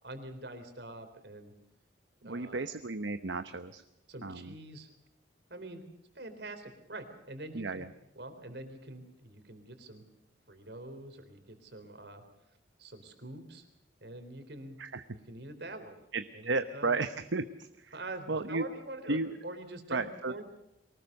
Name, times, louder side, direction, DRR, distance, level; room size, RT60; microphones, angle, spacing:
voice 1, 0.0-1.5 2.2-2.6 4.1-4.9 5.5-5.8 6.1-7.9 8.2-10.0 10.5-12.2 12.8-13.6 14.0-14.8 15.1-16.0 16.3-17.0 17.9-19.2 19.4-20.4, right 2 dB, 60° right, 7 dB, 3.8 m, -45 dB
voice 2, 2.2-3.8 4.2-4.5 7.5-7.9 14.8-15.0 16.1-18.0 18.3-18.7 19.1-19.4 19.9-20.3, right 3 dB, 75° right, 9 dB, 1.0 m, -34 dB
23.5 x 19.5 x 6.7 m, 0.87 s
head